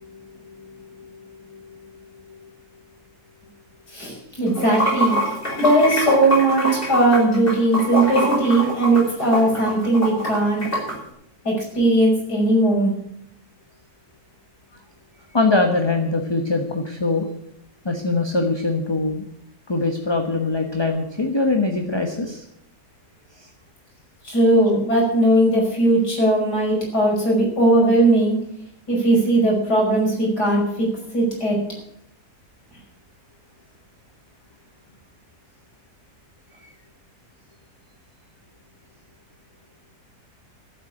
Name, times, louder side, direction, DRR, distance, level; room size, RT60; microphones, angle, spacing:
voice 1, 0.0-2.4 15.3-17.3 17.8-19.2 19.7-22.4 23.4-23.5, left 3 dB, 20° left, 3 dB, 1.2 m, -23 dB
voice 2, 3.9-5.2 5.6-10.7 11.4-12.9 24.2-28.4 28.9-30.9 31.1-31.6, right 1 dB, 85° left, -2 dB, 6.2 m, -18 dB
Water / Sink (filling or washing), 4.5-10.9, equal, 35° left, 6.2 m, -24 dB
13.5 x 8.4 x 9.9 m, 0.75 s
omnidirectional pair, 1.7 m